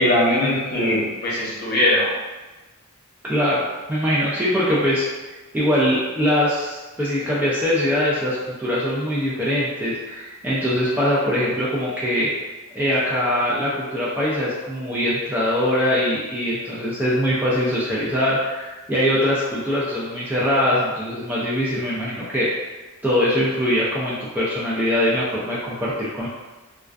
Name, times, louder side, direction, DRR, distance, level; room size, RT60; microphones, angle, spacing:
voice 1, 0.0-2.1, left 1 dB, 45° left, -7 dB, 0.8 m, -20 dB
voice 2, 3.2-3.6 3.9-5.1 5.5-12.3 12.7-26.3, equal, 10° right, -8 dB, 0.3 m, -22 dB
2.4 x 2.2 x 2.3 m, 1.2 s
head